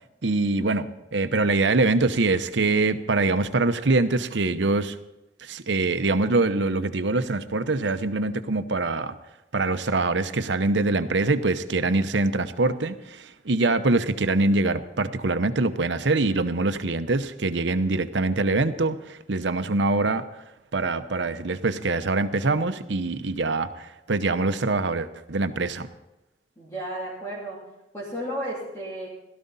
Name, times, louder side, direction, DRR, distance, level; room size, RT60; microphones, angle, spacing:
voice 1, 0.2-5.0 5.4-9.2 9.5-20.4 20.7-25.9, right 3 dB, 75° right, 10 dB, 0.8 m, -24 dB
voice 2, 26.6-27.6 27.9-29.1, right 1 dB, 15° left, -7 dB, 3.0 m, -33 dB
16.5 x 13.0 x 4.1 m, 0.94 s
head